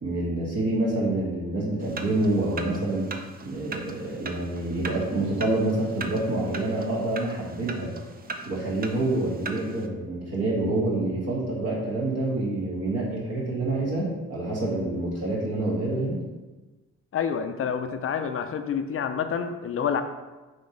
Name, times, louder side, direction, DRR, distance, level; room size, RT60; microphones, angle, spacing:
voice 1, 0.0-3.1 3.4-7.9 8.4-16.2, right 2 dB, 55° right, -5 dB, 1.7 m, -27 dB
sound 1, 1.8-9.9, right 4 dB, 30° right, 0.6 m, -40 dB
voice 2, 17.1-20.0, left 7 dB, 45° left, 8 dB, 0.5 m, -28 dB
6.1 x 3.2 x 5.0 m, 1.2 s
cardioid pair, 90°, 30 cm